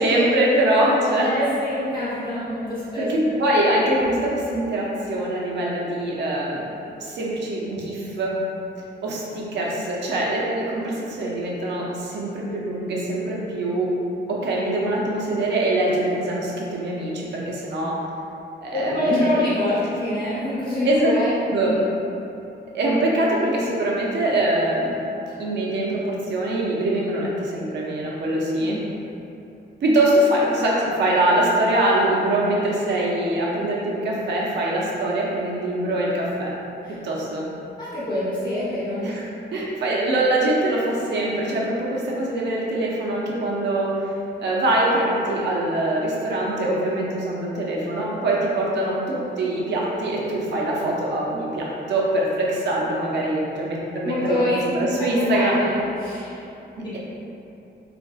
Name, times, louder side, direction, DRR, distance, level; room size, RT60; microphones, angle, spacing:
voice 1, 0.0-1.4 3.0-6.7 7.0-8.4 9.0-13.9 14.3-18.0 18.6-19.4 20.8-21.7 22.7-25.0 25.4-28.8 29.8-36.5 36.9-37.5 39.0-39.2 39.5-44.1 44.4-55.6, right 1 dB, 75° right, -4 dB, 0.5 m, -23 dB
voice 2, 1.2-3.4 18.7-21.3 21.6-21.8 28.6-28.8 36.8-37.0 37.8-39.1 54.0-56.5 56.8-57.0, left 1 dB, 25° left, -11 dB, 0.9 m, -26 dB
3.4 x 2.5 x 2.3 m, 2.8 s
wide cardioid pair, 180°, 18 cm